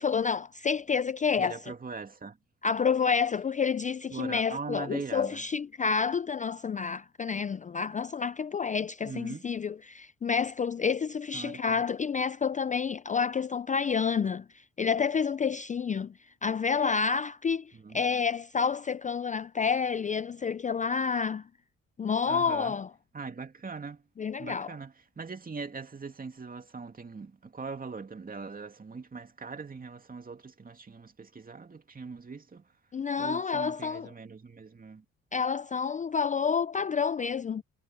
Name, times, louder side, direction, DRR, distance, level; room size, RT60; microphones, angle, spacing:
voice 1, 0.0-1.6 2.6-16.1 16.4-21.4 22.0-22.9 24.2-24.7 32.9-34.1 35.3-37.6, left 6 dB, 25° left, 0.4 m, -29 dB
voice 2, 1.4-2.4 4.1-5.4 9.0-9.5 11.3-11.8 17.7-18.0 22.3-22.8 23.1-24.0 24.4-32.7 33.2-35.0, right 4 dB, 30° right, 2.5 m, -41 dB
cardioid pair, 90°, 30 cm